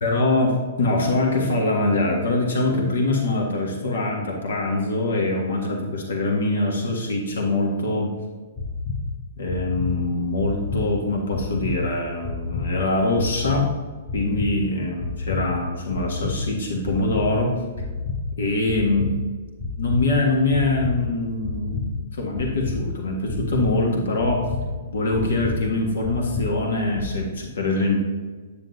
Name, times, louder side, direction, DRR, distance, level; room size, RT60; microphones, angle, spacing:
voice 1, 0.0-8.1 9.4-13.7 14.1-17.5 18.4-19.2 19.8-24.4 24.9-28.0, left 2 dB, 80° left, 0 dB, 1.6 m, -23 dB
sound 1, 8.6-9.0 9.5-9.9 10.4-10.8 11.3-11.7 12.2-12.6 13.2-13.6 14.1-14.5 15.0-15.4 15.9-16.3 16.8-17.3 17.8-18.2 18.7-19.1 19.6-20.0 20.5-20.9 21.4-21.9 22.4-22.8 23.3-23.7 24.2-24.6 25.1-25.5 26.0-26.5 27.0-27.1, left 5 dB, 20° left, 1.0 m, -29 dB
8.8 x 7.4 x 2.8 m, 1.4 s
hypercardioid pair, 135°, 0 cm